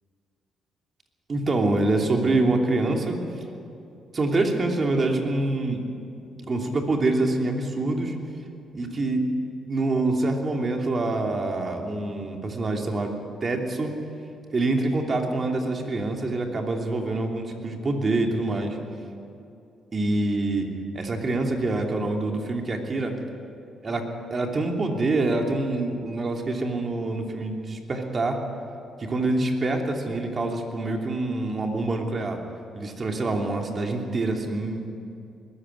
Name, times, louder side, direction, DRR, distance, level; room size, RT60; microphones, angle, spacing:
voice 1, 1.3-3.2 4.1-5.8 6.5-8.1 8.7-9.3 9.6-13.1 13.4-13.9 14.5-18.8 19.9-20.7 20.9-23.1 23.8-28.4 29.0-32.4 32.8-34.9, right 2 dB, 35° right, 2 dB, 3.0 m, -25 dB
21.0 x 14.0 x 9.6 m, 2.6 s
cardioid pair, 90°, 0 cm